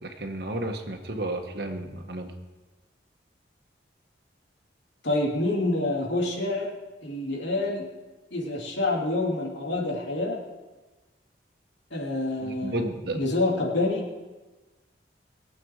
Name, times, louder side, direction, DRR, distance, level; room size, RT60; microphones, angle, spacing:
voice 1, 0.0-2.3 12.4-13.2, right 1 dB, 55° right, 5 dB, 1.4 m, -32 dB
voice 2, 5.0-6.7 7.0-7.9 8.3-10.4 11.9-12.8 13.1-14.2, left 2 dB, 75° left, -2 dB, 2.9 m, -27 dB
22.0 x 8.1 x 4.8 m, 1.2 s
head